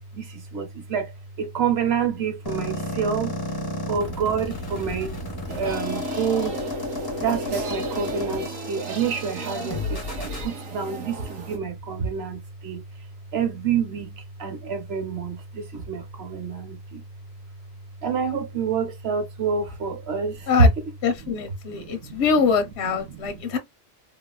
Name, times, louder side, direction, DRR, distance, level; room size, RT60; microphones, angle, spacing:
voice 1, 0.1-1.1 1.4-3.3 3.9-5.2 5.5-6.6 7.2-12.8 13.3-17.0 18.0-20.7 21.2-22.2 22.8-23.4, right 5 dB, 55° right, 1.1 m, -27 dB
sound 1, 2.5-10.5, left 2 dB, 20° left, 0.8 m, -32 dB
sound 2, 5.5-11.6, right 3 dB, 85° right, 1.2 m, -36 dB
voice 2, 21.0-23.6, left 5 dB, 65° left, 0.8 m, -23 dB
3.5 x 2.3 x 2.3 m
omnidirectional pair, 1.3 m